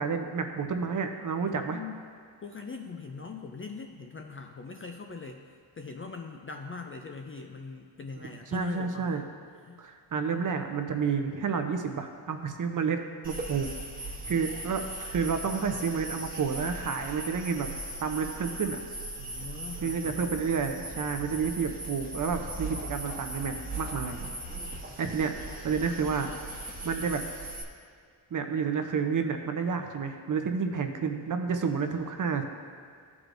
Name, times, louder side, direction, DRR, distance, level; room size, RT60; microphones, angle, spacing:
voice 1, 0.0-1.8 8.5-9.2 9.8-13.7 14.2-17.7 18.0-18.8 19.8-24.2 25.0-25.3 25.6-27.2 28.3-32.4, right 6 dB, 40° right, 6 dB, 0.7 m, -30 dB
voice 2, 1.5-2.1 2.4-5.4 5.8-9.2 9.6-9.8 19.2-20.3, left 4 dB, 30° left, 3 dB, 0.4 m, -41 dB
sound 1, 13.2-27.6, right 2 dB, 20° right, 1.1 m, -39 dB
14.5 x 4.8 x 2.6 m, 2.1 s
cardioid pair, 110°, 47 cm